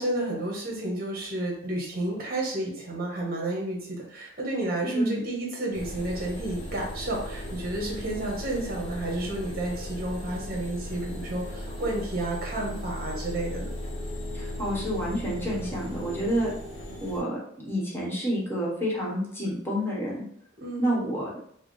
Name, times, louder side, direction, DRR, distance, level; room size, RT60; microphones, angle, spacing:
voice 1, 0.0-13.7 20.6-20.9, right 1 dB, 50° right, -1 dB, 1.2 m, -31 dB
voice 2, 4.8-5.3 14.3-16.5 17.0-20.2 20.8-21.2, equal, 10° left, -5 dB, 1.1 m, -29 dB
sound 1, 5.7-17.2, left 1 dB, 85° left, 1.2 m, -37 dB
4.7 x 2.1 x 3.1 m, 0.66 s
head